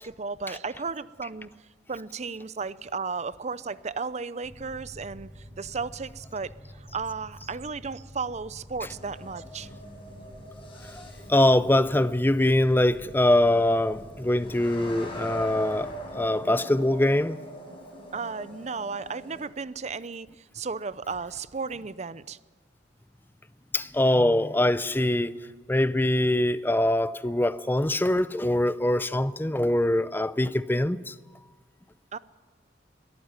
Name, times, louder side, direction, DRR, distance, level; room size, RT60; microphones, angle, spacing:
voice 1, 0.0-1.5 1.9-9.7 18.1-22.4 32.1-32.2, right 4 dB, 35° right, 0.6 m, -34 dB
sound 1, 4.4-16.1, equal, 5° right, 6.0 m, -47 dB
sound 2, 8.9-19.5, equal, 30° left, 5.5 m, -43 dB
voice 2, 10.9-17.4 23.7-25.3 25.7-31.1, left 1 dB, 10° left, 0.5 m, -23 dB
22.0 x 14.0 x 9.6 m
head